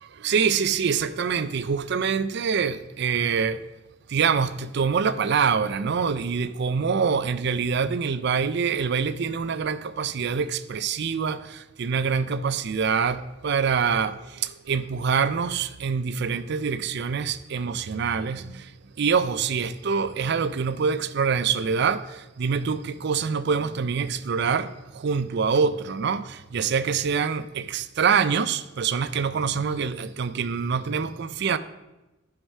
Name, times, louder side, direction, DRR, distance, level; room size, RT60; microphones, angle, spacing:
voice 1, 0.2-3.6 4.1-18.6 19.0-22.0 22.4-31.6, right 6 dB, 60° right, 0.5 m, -25 dB
11.5 x 4.7 x 5.4 m
head